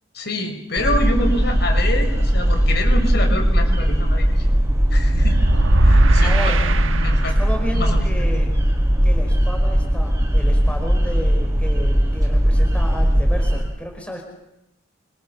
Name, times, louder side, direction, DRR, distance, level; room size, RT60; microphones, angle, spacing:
voice 1, 0.1-4.5 4.9-5.4 5.8-7.4 7.7-8.1, left 1 dB, 55° left, 4 dB, 6.0 m, -27 dB
sound 1, 0.8-13.6, equal, 15° right, 7.4 m, -18 dB
sound 2, 5.0-7.6, right 1 dB, 80° right, 1.3 m, -18 dB
voice 2, 6.0-6.6 7.2-8.6 9.0-14.2, equal, 5° left, 2 dB, 4.8 m, -32 dB
27.5 x 26.0 x 7.1 m, 0.86 s
head